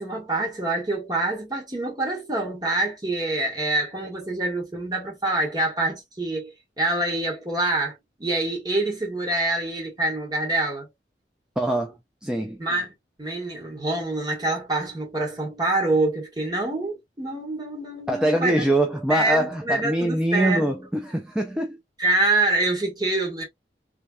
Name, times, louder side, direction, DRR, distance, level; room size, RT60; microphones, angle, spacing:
voice 1, 0.0-10.9 12.6-12.9 13.2-18.6 19.1-20.7 22.0-23.4, right 2 dB, 25° right, 1.7 m, -26 dB
voice 2, 11.6-12.0 12.2-12.6 18.1-21.8, right 1 dB, 5° right, 0.5 m, -23 dB
3.4 x 3.4 x 2.4 m
head